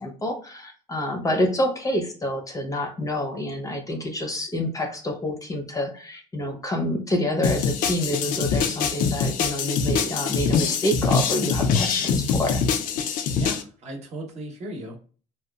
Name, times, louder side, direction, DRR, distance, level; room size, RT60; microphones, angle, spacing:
voice 1, 0.0-12.6, left 1 dB, 20° left, 3 dB, 0.6 m, -27 dB
sound 1, 7.4-13.6, left 6 dB, 65° left, 0.4 m, -24 dB
voice 2, 13.4-15.0, right 1 dB, 45° right, 1 dB, 0.8 m, -36 dB
2.8 x 2.2 x 2.2 m, 0.39 s
supercardioid pair, 90°, 15 cm